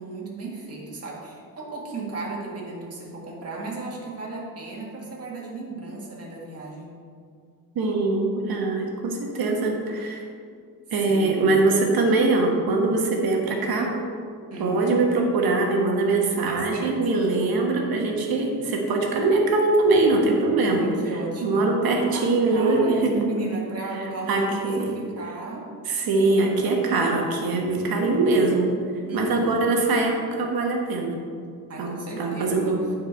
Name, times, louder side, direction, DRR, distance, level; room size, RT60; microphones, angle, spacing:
voice 1, 0.0-6.9 11.1-11.6 14.5-15.0 16.5-17.0 20.6-24.7 24.9-25.7 29.0-29.6 31.7-32.8, right 3 dB, 40° right, -3 dB, 1.7 m, -34 dB
voice 2, 7.7-10.2 10.9-13.9 14.6-20.9 21.4-23.1 23.9-24.0 24.3-24.9 25.8-28.7 29.1-31.2 31.8-32.8, right 3 dB, 80° right, 1 dB, 1.4 m, -22 dB
9.3 x 4.6 x 4.4 m, 2.2 s
cardioid pair, 120°, 36 cm